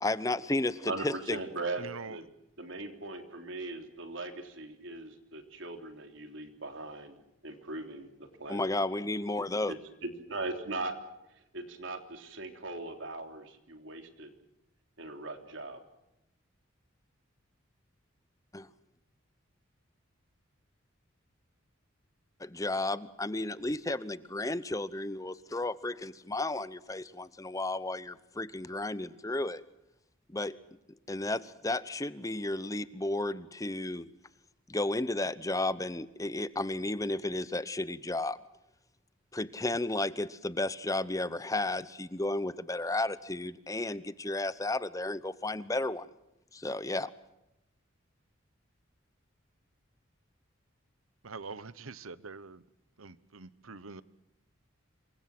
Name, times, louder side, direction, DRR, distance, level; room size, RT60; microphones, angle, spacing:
voice 1, 0.0-1.4 8.5-9.7 18.5-18.7 22.4-29.6 30.3-30.6 31.1-34.1 34.7-38.4 39.3-46.1 46.5-47.1, left 2 dB, 15° left, 0.8 m, -33 dB
voice 2, 0.9-2.2 2.6-8.7 9.7-11.0 11.5-14.3 15.0-15.8, right 2 dB, 65° right, 3.3 m, -40 dB
voice 3, 1.8-2.2 51.2-52.6 53.0-54.0, right 4 dB, 90° right, 1.1 m, -44 dB
27.0 x 23.5 x 6.1 m
head